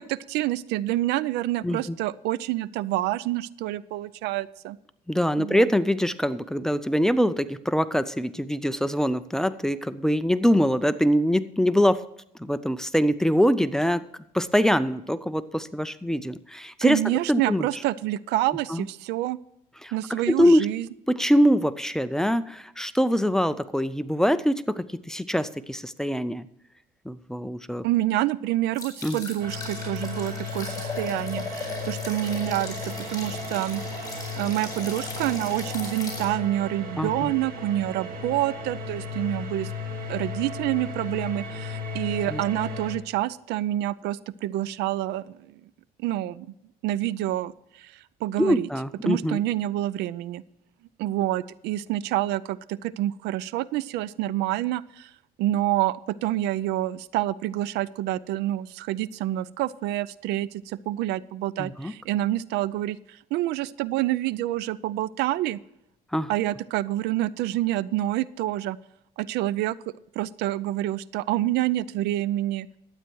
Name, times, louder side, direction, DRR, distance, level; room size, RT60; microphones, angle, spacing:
voice 1, 0.0-4.8 5.4-5.7 16.8-19.4 19.9-20.9 27.8-39.7 40.1-45.6 46.0-46.5 46.8-48.7 49.0-50.4 51.0-55.1 55.4-65.6 66.3-68.8 69.2-72.7, right 14 dB, 85° right, 20 dB, 0.4 m, -27 dB
voice 2, 1.6-2.0 5.1-12.0 12.4-14.0 14.3-17.0 17.3-17.7 18.7-18.8 19.8-19.9 20.3-20.7 21.1-26.5 27.1-27.8 29.0-29.2 37.0-37.3 42.3-42.4 48.4-49.4 61.6-61.9 66.1-66.3, equal, 5° left, 13 dB, 0.5 m, -23 dB
sound 1, 28.7-36.3, left 3 dB, 20° left, 4.4 m, -37 dB
sound 2, 29.4-43.0, left 3 dB, 60° right, 2.1 m, -35 dB
12.0 x 8.9 x 4.6 m, 0.80 s
cardioid pair, 110°, 17 cm